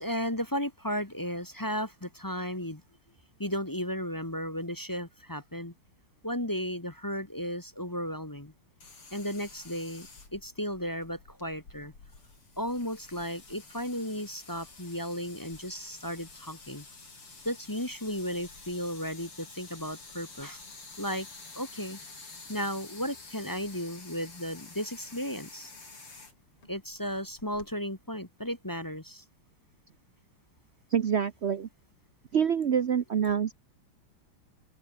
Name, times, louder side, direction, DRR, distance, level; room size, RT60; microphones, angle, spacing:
voice 1, 0.0-2.8 3.4-5.7 6.2-8.5 9.1-10.1 10.3-11.9 12.6-16.8 17.4-20.6 21.0-21.3 21.5-22.0 22.5-25.7 26.7-29.2, equal, 10° left, 1.2 m, -34 dB
sound 1, 8.8-27.7, left 3 dB, 85° left, 6.4 m, -50 dB
voice 2, 30.9-31.7 32.3-33.6, right 7 dB, 85° right, 0.5 m, -26 dB
omnidirectional pair, 2.4 m